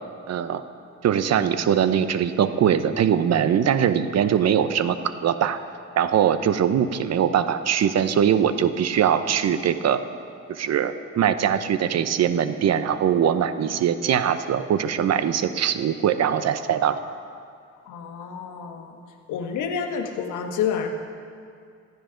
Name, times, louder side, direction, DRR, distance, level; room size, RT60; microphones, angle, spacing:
voice 1, 0.3-0.6 1.0-5.6 6.0-10.0 10.5-17.0, right 9 dB, 60° right, 11 dB, 0.8 m, -22 dB
voice 2, 17.9-19.0 19.3-20.9, left 7 dB, 80° left, 4 dB, 1.4 m, -29 dB
15.5 x 15.0 x 3.9 m, 2.3 s
cardioid pair, 90°, 30 cm